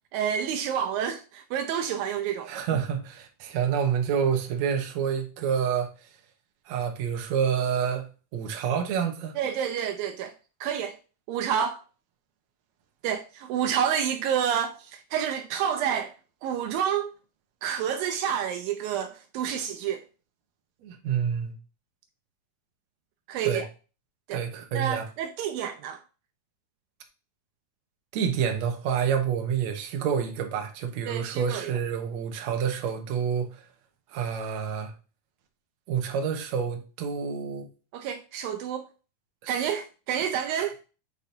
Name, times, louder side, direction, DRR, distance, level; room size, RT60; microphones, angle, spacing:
voice 1, 0.1-2.6 9.4-10.3 10.6-11.0 11.3-11.8 13.0-16.1 16.4-17.1 17.6-20.0 23.3-23.7 24.3-24.4 24.7-26.0 31.1-31.8 37.9-38.9 39.5-40.7, right 8 dB, 80° right, 2.3 m, -29 dB
voice 2, 2.5-5.9 6.7-8.1 8.3-9.3 20.8-21.6 23.4-23.6 24.3-25.1 28.1-33.6 34.1-34.9 35.9-37.7 39.4-39.6 40.6-40.7, right 7 dB, 65° right, 2.0 m, -28 dB
8.5 x 4.9 x 2.8 m
omnidirectional pair, 4.2 m